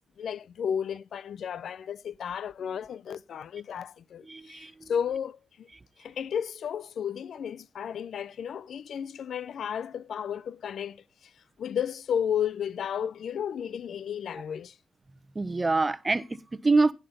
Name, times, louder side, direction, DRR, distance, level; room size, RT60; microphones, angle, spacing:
voice 1, 0.2-5.7 6.0-11.3 11.6-14.8, left 8 dB, 60° left, 0.5 m, -33 dB
voice 2, 4.2-4.9 15.3-16.9, right 3 dB, 20° right, 1.0 m, -26 dB
16.5 x 5.8 x 5.3 m
cardioid pair, 90°, 0 cm